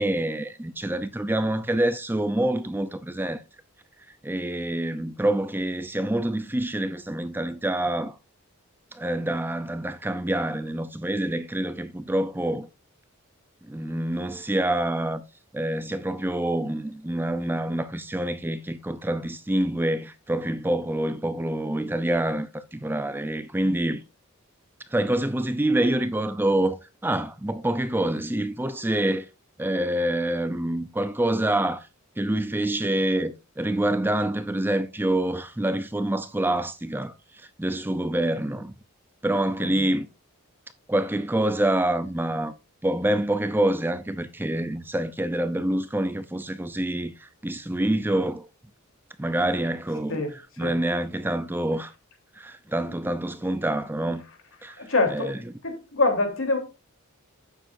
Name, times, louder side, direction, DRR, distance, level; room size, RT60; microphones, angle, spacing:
voice 1, 0.0-3.4 4.2-8.1 8.9-12.7 13.7-15.2 15.5-24.0 24.9-26.8 27.0-29.3 29.6-31.9 32.2-37.1 37.6-38.7 39.2-40.1 40.9-42.5 42.8-48.4 49.2-50.2 50.6-51.9 52.4-54.2 54.6-55.4, right 1 dB, 10° right, 0.5 m, -26 dB
voice 2, 39.6-39.9 50.1-50.7 52.9-53.0 54.8-55.4 55.6-56.6, left 3 dB, 65° left, 3.4 m, -26 dB
11.5 x 9.1 x 2.6 m
head